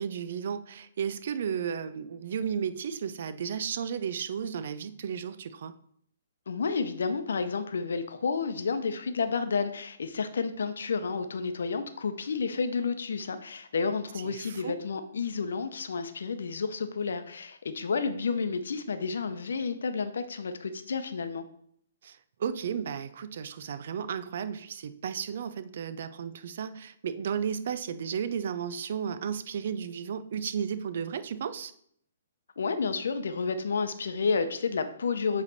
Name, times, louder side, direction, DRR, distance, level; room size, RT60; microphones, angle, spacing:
voice 1, 0.0-5.7 14.2-14.7 22.0-31.7, right 7 dB, 60° right, 13 dB, 0.5 m, -34 dB
voice 2, 6.5-21.5 32.6-35.4, left 5 dB, 75° left, 9 dB, 0.7 m, -31 dB
8.2 x 3.3 x 4.1 m, 0.66 s
hypercardioid pair, 140°, 0 cm